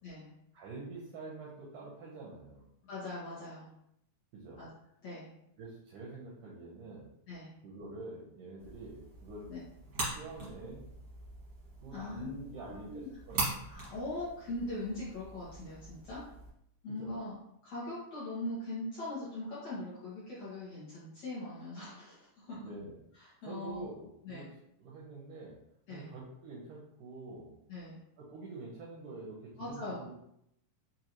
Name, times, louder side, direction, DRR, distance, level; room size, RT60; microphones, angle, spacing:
voice 1, 0.5-2.7 4.3-4.6 5.6-7.1 7.6-9.5 10.1-10.9 11.8-13.5 17.0-17.1 22.6-23.0 23.4-24.5 24.8-25.6 25.9-27.5 28.2-30.1, right 3 dB, 85° right, -4 dB, 1.8 m, -46 dB
voice 2, 2.9-3.7 4.6-4.7 5.0-5.3 7.3-7.5 9.5-9.6 11.9-13.2 13.7-16.2 16.8-17.4 17.6-22.6 23.2-23.9 24.2-24.5 25.9-26.1 27.7-28.0 29.6-30.0, left 2 dB, 80° left, -9 dB, 1.4 m, -41 dB
sound 1, 8.6-16.5, right 2 dB, 70° right, 1.0 m, -42 dB
6.4 x 2.6 x 2.9 m, 0.76 s
omnidirectional pair, 4.7 m